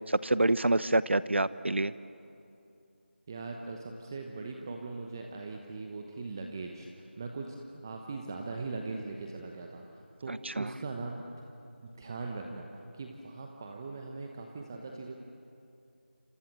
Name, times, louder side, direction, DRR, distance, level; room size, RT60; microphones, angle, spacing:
voice 1, 0.0-1.9 10.3-10.7, right 2 dB, 70° right, 16 dB, 0.9 m, -27 dB
voice 2, 3.3-11.2 11.8-12.7 12.9-15.1, right 3 dB, 15° right, 2 dB, 1.0 m, -40 dB
28.5 x 26.0 x 7.6 m, 2.6 s
figure-of-eight pair, 170°, 7 cm